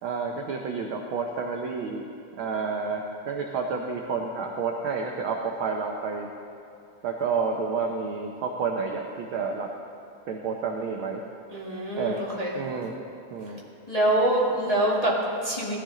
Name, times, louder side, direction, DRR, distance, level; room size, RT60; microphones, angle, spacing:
voice 1, 0.0-2.0 2.4-6.3 7.0-9.7 10.3-11.2 12.0-12.2 12.5-12.9 13.3-13.6, right 5 dB, 75° right, 2 dB, 1.2 m, -30 dB
voice 2, 11.5-12.5 13.9-15.8, right 1 dB, 15° left, -5 dB, 1.4 m, -25 dB
17.5 x 13.5 x 3.8 m, 2.8 s
omnidirectional pair, 3.4 m